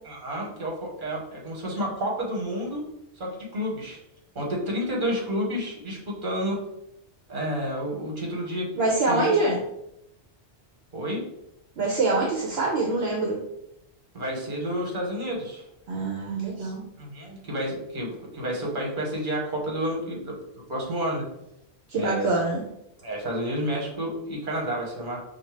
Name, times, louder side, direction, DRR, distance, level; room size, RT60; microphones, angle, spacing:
voice 1, 0.0-2.9 3.2-4.0 4.3-6.6 7.3-8.7 9.1-9.3 10.9-11.2 14.1-15.7 16.6-16.7 17.0-20.3 20.7-21.3 21.9-22.3 23.0-25.2, equal, 50° right, -2 dB, 1.2 m, -30 dB
voice 2, 8.8-9.6 11.8-13.4 15.9-16.8 21.9-22.6, right 2 dB, 65° right, -2 dB, 0.9 m, -24 dB
5.2 x 2.3 x 3.1 m, 0.81 s
omnidirectional pair, 1.1 m